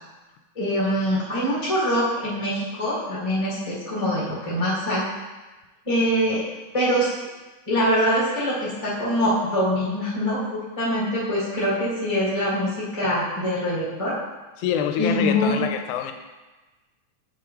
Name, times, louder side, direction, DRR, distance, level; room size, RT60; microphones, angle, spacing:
voice 1, 0.5-5.1 5.8-6.4 6.7-7.1 7.7-14.2 15.0-15.6, equal, 15° left, -9 dB, 1.2 m, -24 dB
voice 2, 14.6-16.1, left 8 dB, 85° left, 7 dB, 2.0 m, -25 dB
7.9 x 5.5 x 3.0 m, 1.2 s
omnidirectional pair, 3.4 m